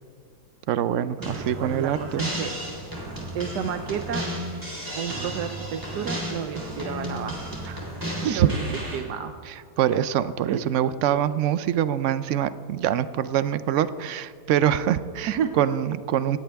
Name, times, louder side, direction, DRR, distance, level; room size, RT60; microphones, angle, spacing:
voice 1, 0.7-2.2 8.3-8.5 9.8-16.4, right 10 dB, 65° right, 14 dB, 0.7 m, -24 dB
sound 1, 1.2-9.0, equal, 10° right, 3.4 m, -33 dB
voice 2, 1.2-2.5 3.3-4.3 4.9-7.8 8.2-8.6 8.9-9.3 10.5-10.8 15.3-15.5, right 8 dB, 85° right, 7 dB, 1.3 m, -31 dB
18.5 x 16.0 x 3.5 m, 2.1 s
omnidirectional pair, 1.7 m